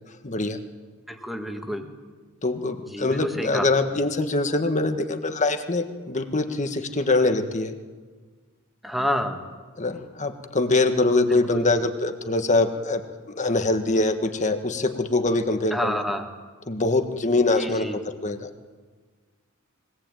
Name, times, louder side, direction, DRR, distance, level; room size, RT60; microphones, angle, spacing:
voice 1, 0.2-0.6 2.4-7.7 9.8-13.0 13.4-16.0 16.7-18.5, left 2 dB, 35° left, 7 dB, 1.5 m, -23 dB
voice 2, 1.1-1.9 2.9-3.6 8.8-9.4 11.3-11.7 15.7-16.3 17.6-18.0, equal, ahead, 4 dB, 1.9 m, -29 dB
22.5 x 18.5 x 9.1 m, 1.5 s
head